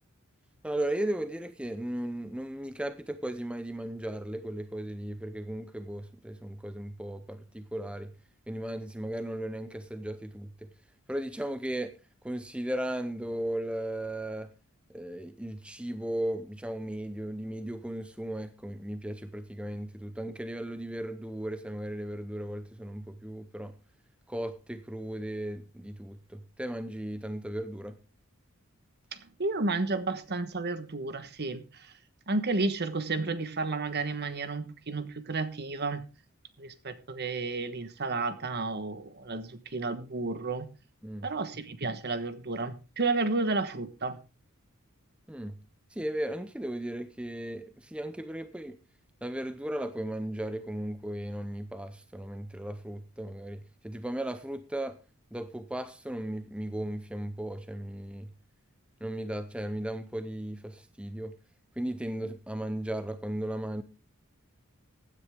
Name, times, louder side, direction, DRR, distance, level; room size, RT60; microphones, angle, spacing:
voice 1, 0.6-8.1 8.5-10.7 11.1-11.9 12.2-14.5 14.9-23.7 24.3-28.0 41.0-41.3 45.3-45.6 45.9-48.8 49.2-55.0 55.3-58.3 59.0-61.3 61.8-63.8, right 1 dB, 5° right, 0.6 m, -36 dB
voice 2, 29.1-31.9 32.3-36.0 36.6-40.7 41.2-44.2, right 3 dB, 50° right, 1.2 m, -32 dB
15.5 x 9.9 x 3.6 m
head